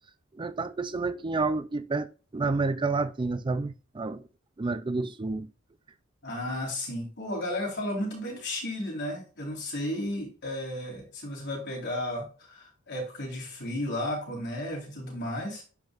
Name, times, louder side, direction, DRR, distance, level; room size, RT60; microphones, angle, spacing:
voice 1, 0.3-4.2 4.6-5.5, right 3 dB, 25° right, 0.4 m, -30 dB
voice 2, 6.2-15.6, left 1 dB, 55° left, 4.1 m, -33 dB
10.5 x 5.4 x 2.5 m
head